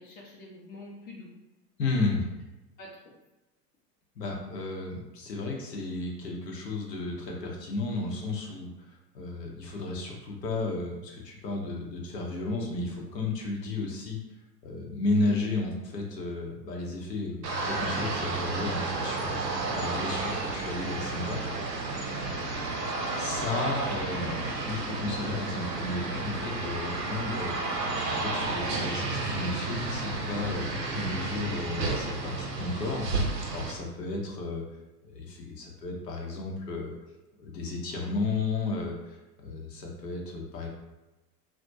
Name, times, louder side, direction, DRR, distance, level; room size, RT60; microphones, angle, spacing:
voice 1, 0.0-1.3 2.8-3.1 22.1-22.4 22.7-22.8, left 2 dB, 20° left, -3 dB, 0.5 m, -47 dB
voice 2, 1.8-2.2 4.2-14.2 14.6-21.4 22.6-34.6 35.0-36.9 37.4-39.2 39.4-40.7, left 3 dB, 80° left, 0 dB, 0.7 m, -33 dB
sound 1, 17.4-33.7, right 3 dB, 75° right, 0.6 m, -32 dB
2.3 x 2.1 x 2.6 m, 1.0 s
figure-of-eight pair, 90°, 49 cm